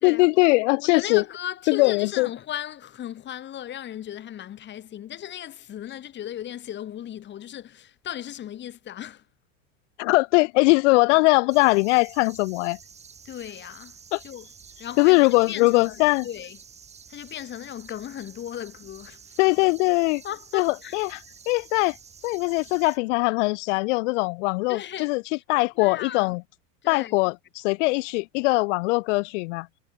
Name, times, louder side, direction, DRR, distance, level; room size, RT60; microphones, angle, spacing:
voice 1, 0.0-1.2 1.7-2.3 10.0-12.8 14.1-14.2 15.0-16.3 19.4-20.2 20.5-21.2 21.5-22.0 22.2-25.2 25.5-26.4 26.9-29.7, left 25 dB, 60° left, 0.5 m, -21 dB
voice 2, 0.8-9.2 13.2-14.0 14.2-14.5 14.8-16.6 17.1-19.4 20.2-21.0 24.7-25.2 25.7-26.3 26.8-27.2, left 11 dB, 25° left, 3.4 m, -36 dB
sound 1, 11.5-23.0, right 6 dB, 15° right, 2.4 m, -49 dB
supercardioid pair, 155°, 40 cm